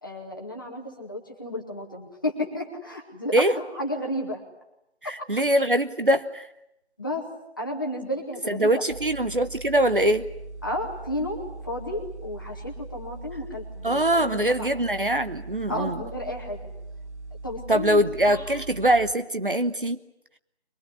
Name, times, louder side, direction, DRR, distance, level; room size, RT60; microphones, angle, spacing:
voice 1, 0.0-3.3 3.7-4.4 7.0-7.2 7.6-8.8 10.6-14.7 15.7-16.6 17.4-18.0 18.3-18.4, left 1 dB, 20° left, 0 dB, 2.0 m, -32 dB
voice 2, 5.0-6.5 8.5-10.2 13.8-16.0 17.7-20.0, right 1 dB, 50° right, 11 dB, 1.0 m, -23 dB
sound 1, 8.9-19.1, right 3 dB, 80° right, 1.2 m, -40 dB
23.0 x 21.0 x 9.9 m, 0.81 s
figure-of-eight pair, 175°, 34 cm